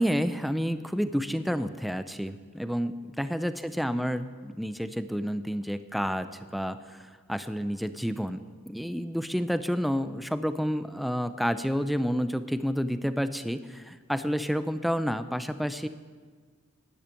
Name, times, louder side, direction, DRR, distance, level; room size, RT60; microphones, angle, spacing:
voice 1, 0.0-7.0 7.3-15.9, equal, ahead, 11 dB, 0.5 m, -30 dB
12.0 x 10.5 x 8.4 m, 1.6 s
head